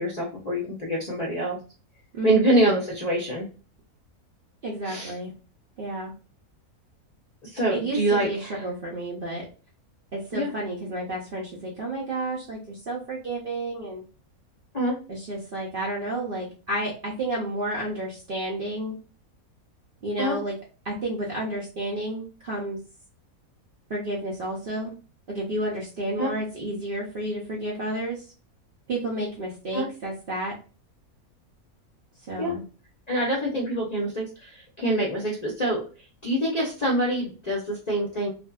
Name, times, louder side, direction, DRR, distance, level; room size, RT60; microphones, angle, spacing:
voice 1, 0.0-1.6 2.2-3.5 4.8-5.2 7.4-8.7 10.3-10.5 14.7-15.0 20.2-20.4 26.2-26.3 29.7-29.9 32.4-32.5 33.1-35.8 36.2-38.3, right 1 dB, 45° left, -3 dB, 0.5 m, -25 dB
voice 2, 4.6-5.3 5.8-6.1 7.7-9.4 10.1-14.0 15.1-18.9 20.0-20.5 20.8-22.8 23.9-24.9 25.3-28.2 28.9-30.6 32.3-32.6, right 1 dB, 60° right, -3 dB, 0.6 m, -31 dB
2.7 x 2.5 x 2.2 m, 0.35 s
omnidirectional pair, 1.5 m